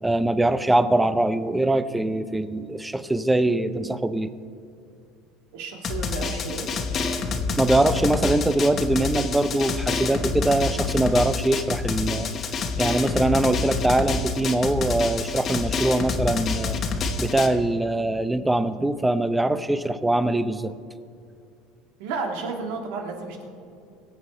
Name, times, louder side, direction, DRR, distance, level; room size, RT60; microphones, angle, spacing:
voice 1, 0.0-4.3 7.6-16.8 17.2-20.7, right 1 dB, 5° right, 13 dB, 0.6 m, -23 dB
voice 2, 5.5-6.7 22.0-23.5, right 4 dB, 80° right, 2 dB, 2.3 m, -32 dB
Drum, 5.8-17.5, left 4 dB, 35° left, 1.1 m, -27 dB
22.5 x 7.7 x 4.4 m, 2.4 s
supercardioid pair, 125°, 0 cm